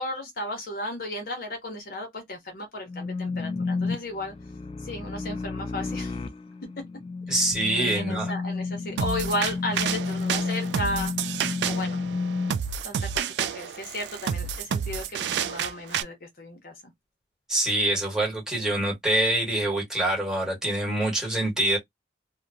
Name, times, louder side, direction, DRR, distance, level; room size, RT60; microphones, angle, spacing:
voice 1, 0.0-4.3 4.8-6.2 7.3-7.5 7.8-11.4 11.7-12.0 12.8-16.9, left 1 dB, 50° left, 0.9 m, -34 dB
sound 1, 2.9-12.5, left 4 dB, 30° left, 0.3 m, -31 dB
voice 2, 7.3-8.3 17.5-21.8, right 1 dB, 5° right, 1.4 m, -25 dB
sound 2, 9.0-16.0, right 8 dB, 65° right, 0.3 m, -30 dB
2.9 x 2.1 x 2.6 m
head